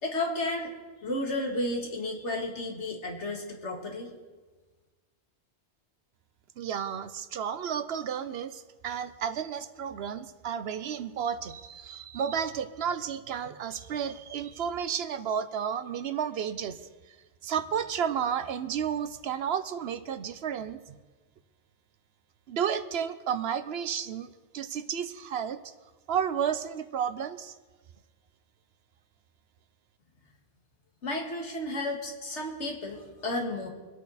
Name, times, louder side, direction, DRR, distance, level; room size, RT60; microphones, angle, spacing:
voice 1, 0.0-0.7 1.0-4.1 31.0-33.7, left 1 dB, 90° left, 1 dB, 2.2 m, -32 dB
voice 2, 6.6-16.8 17.4-21.0 22.5-24.3 24.5-25.6 26.1-27.6, right 8 dB, 65° right, 12 dB, 0.9 m, -32 dB
24.5 x 8.5 x 4.1 m, 1.3 s
omnidirectional pair, 1.2 m